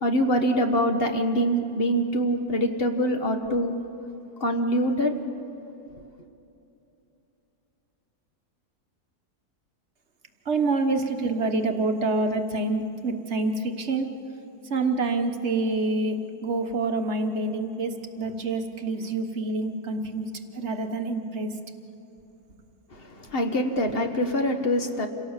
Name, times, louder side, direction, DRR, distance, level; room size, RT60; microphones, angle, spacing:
voice 1, 0.0-3.7 4.4-5.1 22.9-25.1, equal, 40° left, 5 dB, 1.4 m, -24 dB
voice 2, 10.4-14.1 14.7-21.5, right 3 dB, 45° right, 5 dB, 1.4 m, -27 dB
27.5 x 17.5 x 7.3 m, 2.8 s
omnidirectional pair, 1.7 m